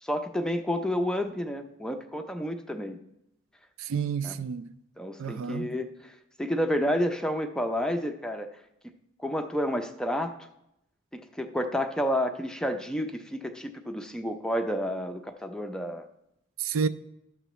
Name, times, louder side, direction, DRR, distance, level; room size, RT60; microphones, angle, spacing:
voice 1, 0.0-3.0 4.2-4.3 5.0-8.5 9.2-10.3 11.1-16.1, equal, 5° left, 0.4 m, -30 dB
voice 2, 3.8-4.7 5.2-5.7 16.6-16.9, right 6 dB, 75° right, 0.4 m, -30 dB
12.5 x 6.6 x 3.0 m
head